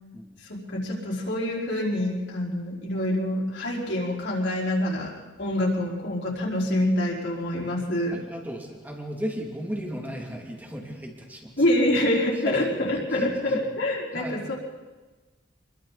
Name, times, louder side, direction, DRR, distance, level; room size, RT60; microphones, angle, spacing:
voice 1, 0.4-5.1 5.4-8.2 11.6-14.5, left 1 dB, 60° left, -4 dB, 4.9 m, -26 dB
voice 2, 8.1-11.5 12.3-12.7 13.1-13.7 14.1-14.5, equal, 10° right, 0 dB, 2.7 m, -35 dB
28.5 x 22.5 x 4.2 m, 1.2 s
head